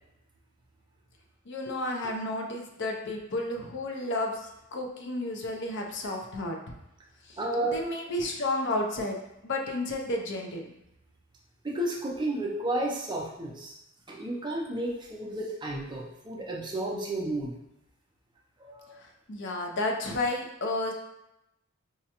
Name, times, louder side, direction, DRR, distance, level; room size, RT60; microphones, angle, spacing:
voice 1, 1.5-6.8 7.2-7.4 7.7-10.7 19.0-20.9, left 2 dB, 55° left, 2 dB, 0.5 m, -32 dB
voice 2, 7.4-7.8 11.6-13.7 14.1-17.5 18.6-18.9, right 1 dB, 20° right, -2 dB, 0.5 m, -32 dB
4.7 x 2.2 x 2.8 m, 0.87 s
head